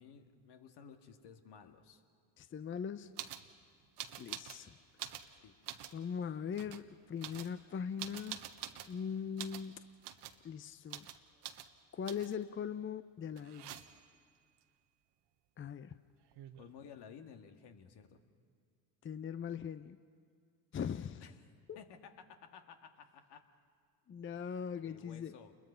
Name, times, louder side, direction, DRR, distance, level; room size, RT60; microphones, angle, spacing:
voice 1, 0.0-2.0 5.4-5.6 16.6-18.2 21.2-21.4 21.8-23.5 24.8-25.5, left 7 dB, 60° left, 6 dB, 2.0 m, -55 dB
voice 2, 2.4-3.1 4.2-4.7 5.9-8.4 8.9-9.9 10.4-11.1 11.9-13.8 15.6-15.9 19.0-20.0 20.7-21.2 24.1-25.3, left 7 dB, 25° left, 12 dB, 0.6 m, -40 dB
sound 1, 3.2-3.5 4.0-4.6 4.9-6.0 6.5-6.8 7.2-9.0 9.4-9.7 10.0-10.4 10.9-11.2 11.4-11.7 12.1-12.4 13.4-14.1 15.9-16.0 16.2-16.8, right 11 dB, 60° right, 1.3 m, -46 dB
28.5 x 22.0 x 5.7 m, 2.2 s
hypercardioid pair, 70°, 45 cm